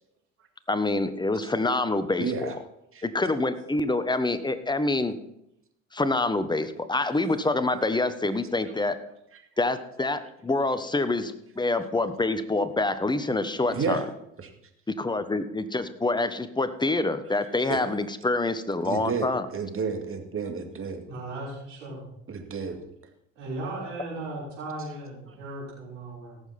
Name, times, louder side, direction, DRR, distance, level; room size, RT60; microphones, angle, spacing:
voice 1, 0.7-2.6 3.0-5.1 5.9-9.0 9.6-14.0 14.9-19.5, left 2 dB, 10° left, 11 dB, 1.2 m, -26 dB
voice 2, 2.2-2.6 2.9-3.0 13.7-14.0 17.7-17.8 18.8-21.0 22.3-22.8, right 5 dB, 35° right, 5 dB, 2.2 m, -31 dB
voice 3, 21.1-22.0 23.4-26.4, right 2 dB, 85° right, -7 dB, 5.7 m, -37 dB
18.0 x 7.3 x 4.3 m, 0.78 s
hypercardioid pair, 60°, 37 cm